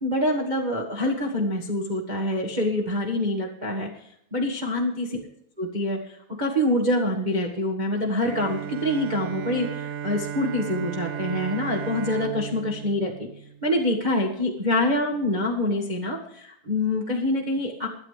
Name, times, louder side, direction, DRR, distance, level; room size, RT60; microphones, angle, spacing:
voice 1, 0.0-5.2 5.6-13.3 13.6-17.9, left 1 dB, 55° right, -2 dB, 0.5 m, -26 dB
Bowed string instrument, 8.2-14.1, right 9 dB, 80° right, 2.2 m, -35 dB
22.0 x 10.5 x 3.3 m, 0.74 s
omnidirectional pair, 3.9 m